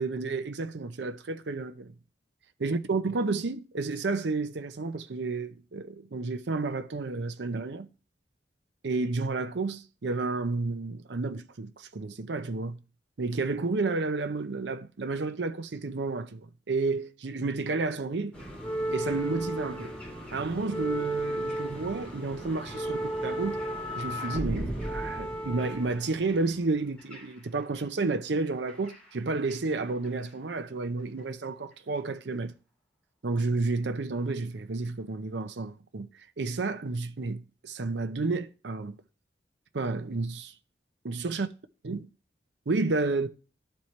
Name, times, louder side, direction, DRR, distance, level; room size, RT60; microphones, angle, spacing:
voice 1, 0.0-1.9 2.6-7.9 8.8-12.8 13.2-18.3 18.9-19.9 20.3-23.6 24.0-32.5 33.2-36.1 36.4-39.0 39.7-40.5 41.0-41.5 41.8-42.0 42.7-43.3, right 3 dB, 75° right, 0.6 m, -31 dB
sound 1, 18.3-27.8 28.7-29.8 30.0-30.3 31.2-31.3, right 1 dB, 10° left, 2.9 m, -34 dB
12.0 x 4.4 x 3.2 m
head